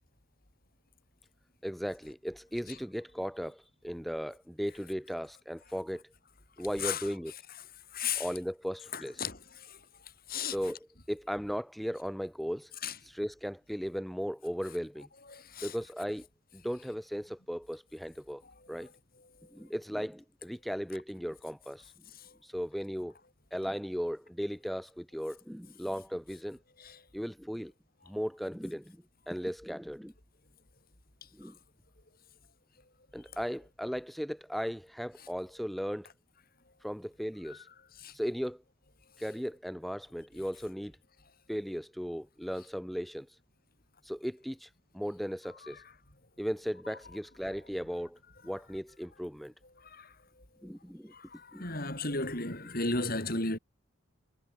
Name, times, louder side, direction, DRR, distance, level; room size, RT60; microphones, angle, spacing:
voice 1, 1.6-6.0 6.6-7.3 8.2-9.2 10.4-12.7 13.0-15.1 15.6-16.3 16.5-18.4 18.7-18.9 19.5-21.9 22.4-23.1 23.5-26.6 27.1-27.7 28.1-29.0 29.3-30.1 31.3-31.5 33.1-36.1 36.8-37.7 38.1-38.6 39.2-40.9 41.5-43.3 44.0-45.8 46.4-48.2 48.4-49.5 50.6-51.1 51.5-51.6, equal, ahead, 2.7 m, -37 dB
voice 2, 7.9-8.3 8.9-9.4 9.7-9.8 10.3-10.6 12.8-12.9 15.3-15.7 26.8-26.9 38.0-38.1 49.9-50.1 51.1-53.6, left 3 dB, 45° left, 7.3 m, -34 dB
head